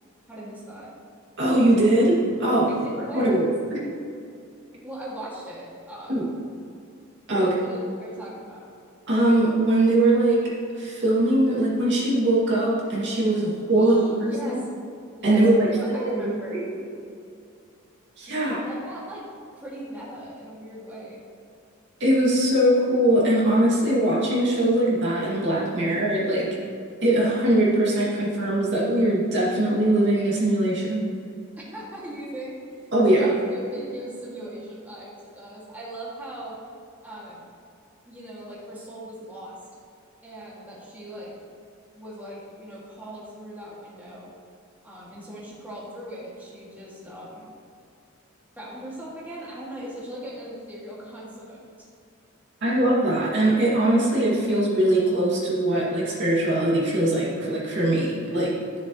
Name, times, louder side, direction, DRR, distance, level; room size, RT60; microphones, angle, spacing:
voice 1, 0.3-0.9 2.7-3.4 4.8-6.4 7.3-8.7 13.8-14.6 15.2-16.6 18.3-19.3 19.6-21.2 31.7-36.6 37.0-37.5 38.0-39.6 40.2-41.3 42.0-44.3 44.8-47.5 48.6-51.6, right 1 dB, 10° right, -7 dB, 2.3 m, -39 dB
voice 2, 1.4-2.7 3.1-3.9 6.1-6.3 7.3-7.5 9.1-14.0 14.4-14.5 15.2-15.7 15.9-16.8 18.2-18.6 22.0-26.5 27.0-31.1 32.9-33.4 52.6-58.6, right 1 dB, 55° right, -6 dB, 2.5 m, -21 dB
13.5 x 7.1 x 3.2 m, 2.5 s
head